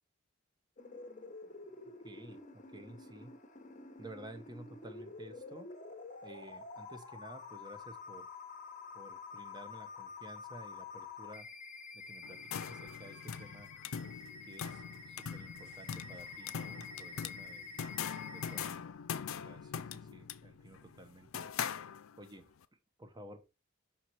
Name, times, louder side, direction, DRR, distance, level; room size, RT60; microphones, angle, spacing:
sound 1, 0.8-18.7, left 4 dB, 40° left, 1.0 m, -49 dB
voice 1, 2.0-2.4 2.7-3.3 4.0-5.7 6.2-8.3 8.9-11.5 11.9-13.7 14.5-17.6 18.3-18.9 19.4-21.5 22.2-22.4 23.0-23.4, right 1 dB, 20° right, 8 dB, 0.9 m, -52 dB
sound 2, 12.2-22.4, left 7 dB, 75° left, 0.5 m, -42 dB
5.8 x 4.6 x 4.2 m, 0.29 s
head